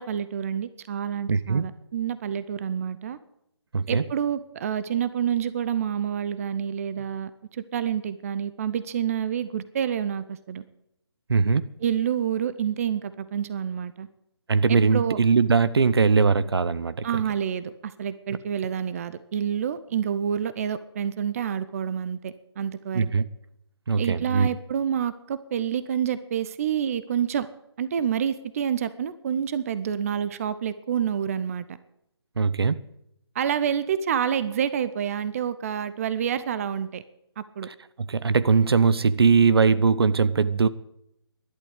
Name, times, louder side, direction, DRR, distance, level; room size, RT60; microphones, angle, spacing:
voice 1, 0.0-3.2 3.9-10.6 11.8-14.1 14.7-15.2 17.0-23.1 24.0-27.5 27.8-31.6 33.3-37.0 37.4-37.7, right 8 dB, 35° right, 0.7 m, -28 dB
voice 2, 1.3-1.6 3.7-4.0 11.3-11.7 14.5-17.1 22.9-23.2 23.9-24.5 32.4-32.8 38.1-40.7, right 5 dB, 65° right, 0.8 m, -20 dB
11.5 x 11.5 x 8.3 m
figure-of-eight pair, 150°, 14 cm